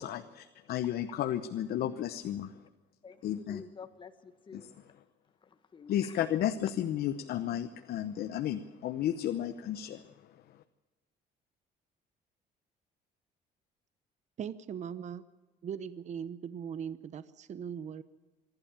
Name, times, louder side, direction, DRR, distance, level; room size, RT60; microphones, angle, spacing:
voice 1, 0.0-2.5 3.2-3.6 4.5-4.6 5.9-10.0, left 11 dB, 65° left, 9 dB, 0.9 m, -33 dB
voice 2, 3.0-4.7 5.4-6.5, left 5 dB, 30° left, 8 dB, 1.3 m, -50 dB
voice 3, 14.4-15.2 15.6-18.0, right 8 dB, 45° right, 14 dB, 0.8 m, -39 dB
25.5 x 12.0 x 8.8 m, 1.2 s
cardioid pair, 110°, 17 cm